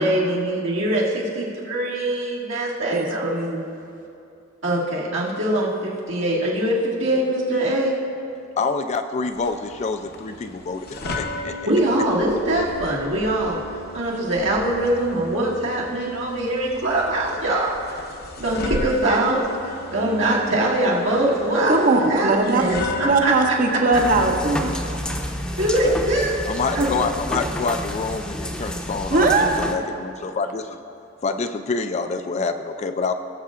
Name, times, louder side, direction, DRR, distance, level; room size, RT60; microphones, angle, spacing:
voice 1, 0.0-3.3 4.6-8.0 11.7-13.6 13.9-17.7 18.4-21.8 22.1-23.8 25.6-26.4 26.7-26.9, right 1 dB, 75° right, -5 dB, 1.9 m, -22 dB
voice 2, 2.9-3.6 21.7-22.8 23.0-24.7 29.1-29.6, right 3 dB, 45° right, 3 dB, 0.8 m, -20 dB
voice 3, 8.6-11.5 25.8-26.0 26.5-30.8 31.2-33.1, left 4 dB, 35° left, 7 dB, 0.4 m, -27 dB
sound 1, 9.3-24.6, left 1 dB, 55° left, 0.9 m, -35 dB
sound 2, 23.9-29.7, equal, 5° left, 0.7 m, -29 dB
18.5 x 7.5 x 2.5 m, 2.7 s
head